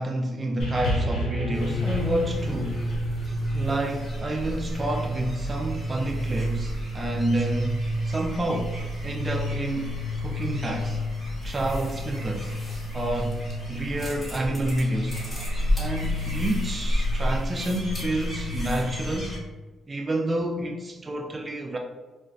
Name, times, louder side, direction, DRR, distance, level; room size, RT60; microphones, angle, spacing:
voice 1, 0.0-2.9 3.5-11.0 11.4-12.6 12.9-15.2 15.8-19.4 19.9-21.8, right 1 dB, 25° right, 2 dB, 0.3 m, -29 dB
sound 1, 0.6-5.1 6.0-6.1, equal, 85° left, 1.1 m, -32 dB
sound 2, 1.5-19.4, equal, 20° left, 1.4 m, -30 dB
sound 3, 15.4-18.1, right 1 dB, 50° left, 0.4 m, -43 dB
3.8 x 2.1 x 2.5 m, 1.3 s
cardioid pair, 90°, 0 cm